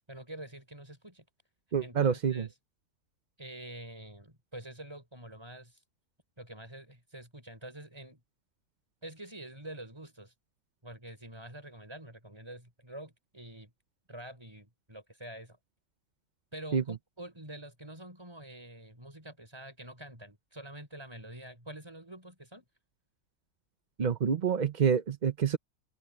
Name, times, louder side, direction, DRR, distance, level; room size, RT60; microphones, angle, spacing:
voice 1, 0.1-1.2 1.8-2.5 3.4-5.8 6.4-8.2 9.0-10.3 10.8-13.7 14.1-15.6 16.5-22.7, right 1 dB, 15° right, 5.8 m, -46 dB
voice 2, 1.7-2.5 16.7-16.8 24.0-25.6, right 7 dB, 50° right, 0.5 m, -27 dB
omnidirectional pair, 1.6 m